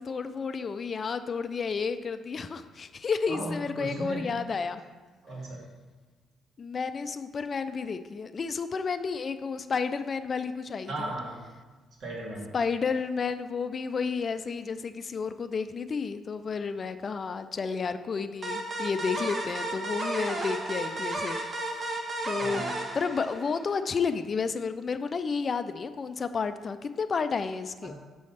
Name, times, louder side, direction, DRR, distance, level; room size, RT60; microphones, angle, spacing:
voice 1, 0.0-4.8 6.6-11.1 12.5-21.4 22.3-22.6 22.9-27.9, left 5 dB, 45° left, 11 dB, 0.3 m, -31 dB
voice 2, 3.3-4.3 5.2-5.7 10.9-11.4 12.0-12.5 22.4-22.7 27.8-27.9, right 1 dB, 70° right, -3 dB, 1.8 m, -36 dB
sound 1, 18.4-23.8, right 2 dB, 40° right, 0.8 m, -33 dB
6.2 x 3.2 x 5.7 m, 1.3 s
cardioid pair, 90°, 0 cm